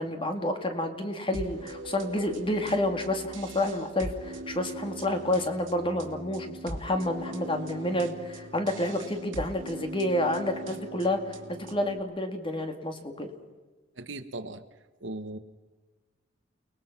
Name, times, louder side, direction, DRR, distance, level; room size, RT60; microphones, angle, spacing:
voice 1, 0.0-11.2 11.5-13.3, left 1 dB, 25° left, 6 dB, 2.2 m, -29 dB
sound 1, 1.3-12.0, right 2 dB, 85° right, 2.3 m, -41 dB
voice 2, 14.0-14.6 15.0-15.4, right 2 dB, 70° right, 9 dB, 1.3 m, -38 dB
29.5 x 20.0 x 6.0 m, 1.3 s
head